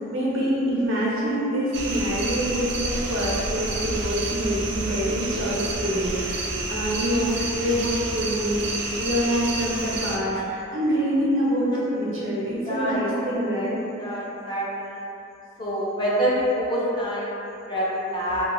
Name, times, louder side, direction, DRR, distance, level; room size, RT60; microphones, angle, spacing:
voice 1, 0.1-13.8, equal, 85° right, -6 dB, 0.8 m, -26 dB
sound 1, 1.7-10.2, right 2 dB, 60° right, 0.4 m, -29 dB
voice 2, 12.7-13.0 14.0-14.7 15.6-18.4, equal, 25° left, -7 dB, 0.6 m, -26 dB
2.9 x 2.3 x 3.0 m, 2.9 s
head